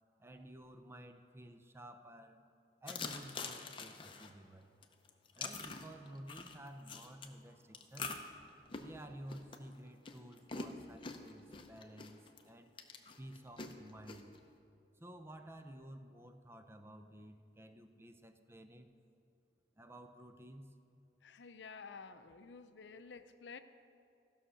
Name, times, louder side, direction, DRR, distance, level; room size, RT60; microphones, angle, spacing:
voice 1, 0.2-2.4 2.8-4.7 5.4-8.1 8.8-12.2 12.4-12.7 13.2-14.3 15.0-18.9 19.8-20.7, right 1 dB, 15° right, 7 dB, 0.5 m, -53 dB
sound 1, 2.9-4.3 4.8-7.3 7.7-12.4 12.8-14.4, left 4 dB, 30° left, 0.6 m, -45 dB
voice 2, 21.2-23.6, left 5 dB, 85° left, 10 dB, 0.5 m, -51 dB
15.5 x 5.6 x 6.3 m, 2.5 s
head